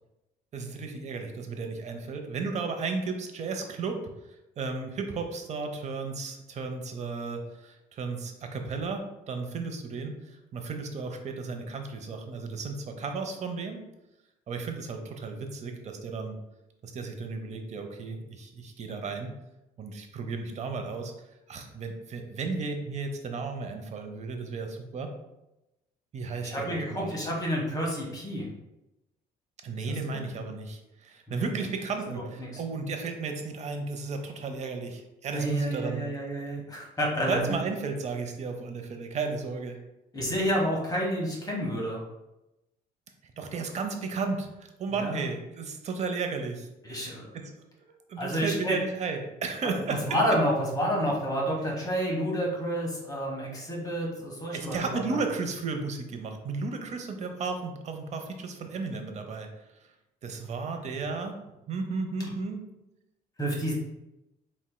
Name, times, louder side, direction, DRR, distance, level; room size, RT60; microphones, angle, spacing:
voice 1, 0.5-4.0 4.6-13.8 14.5-16.4 16.8-19.3 19.8-21.1 21.5-25.1 26.1-27.2 29.6-36.0 37.3-39.8 43.4-47.5 47.8-50.0 54.5-59.5 60.2-61.4 61.7-62.6, right 4 dB, 40° right, 5 dB, 0.7 m, -34 dB
voice 2, 26.4-28.5 29.9-30.2 31.3-31.5 32.4-32.6 35.3-37.6 40.1-42.0 45.0-45.3 46.8-47.2 48.2-48.8 49.6-55.2 60.7-60.9 63.4-63.7, equal, 20° left, -2 dB, 1.3 m, -30 dB
4.3 x 4.2 x 2.2 m, 0.93 s
cardioid pair, 110°, 17 cm